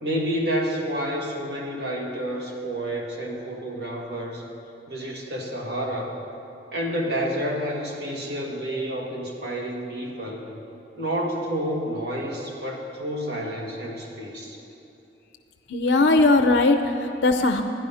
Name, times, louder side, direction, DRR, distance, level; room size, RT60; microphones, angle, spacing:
voice 1, 0.0-4.4 4.9-6.1 6.7-10.6 11.0-14.6, equal, 65° right, -1 dB, 1.8 m, -29 dB
voice 2, 15.7-17.6, left 2 dB, 90° left, 5 dB, 0.6 m, -19 dB
12.0 x 10.5 x 5.5 m, 2.9 s
head